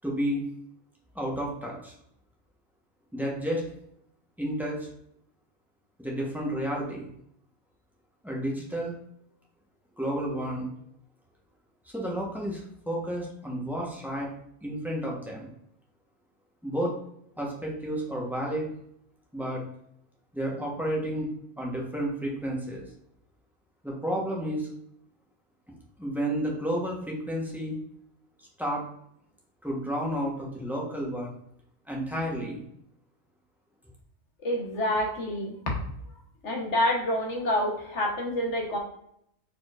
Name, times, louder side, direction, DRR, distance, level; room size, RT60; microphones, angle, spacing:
voice 1, 0.0-0.4 1.1-1.9 3.1-3.6 4.4-4.9 6.0-7.1 8.2-8.9 10.0-10.7 11.9-14.3 14.6-15.5 16.6-16.9 17.4-18.7 19.3-19.6 20.3-21.3 21.6-22.8 23.8-24.7 26.0-27.8 28.6-28.8 29.6-31.3 31.9-32.6, equal, ahead, -3 dB, 0.9 m, -31 dB
voice 2, 34.4-35.5 36.4-38.8, left 1 dB, 60° left, 0 dB, 1.4 m, -27 dB
4.5 x 4.3 x 2.5 m, 0.72 s
omnidirectional pair, 1.4 m